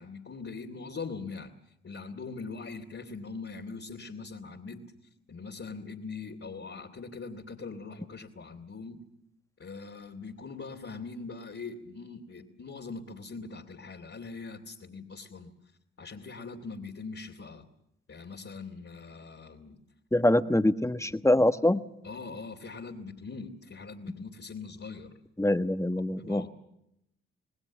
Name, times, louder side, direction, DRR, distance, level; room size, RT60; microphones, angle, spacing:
voice 1, 0.0-1.5 1.8-4.8 5.3-9.0 9.6-15.5 16.0-17.6 18.1-19.8 22.0-25.1 26.2-26.5, left 4 dB, 50° left, -2 dB, 2.7 m, -42 dB
voice 2, 20.1-21.8 25.4-26.5, left 1 dB, 10° left, 9 dB, 1.3 m, -24 dB
27.0 x 19.5 x 7.2 m, 0.82 s
supercardioid pair, 45°, 29 cm